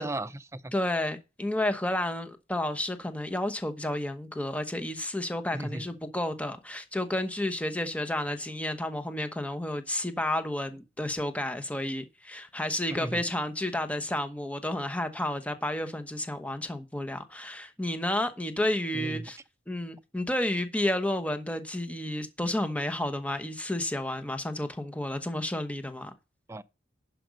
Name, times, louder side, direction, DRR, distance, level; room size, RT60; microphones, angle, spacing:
voice 1, 0.0-0.7 5.5-5.9 12.9-13.2 18.9-19.3 26.5-26.6, right 1 dB, 15° right, 0.5 m, -36 dB
voice 2, 0.7-19.4 19.7-26.1, left 1 dB, 5° left, 1.0 m, -31 dB
11.0 x 5.2 x 5.2 m
head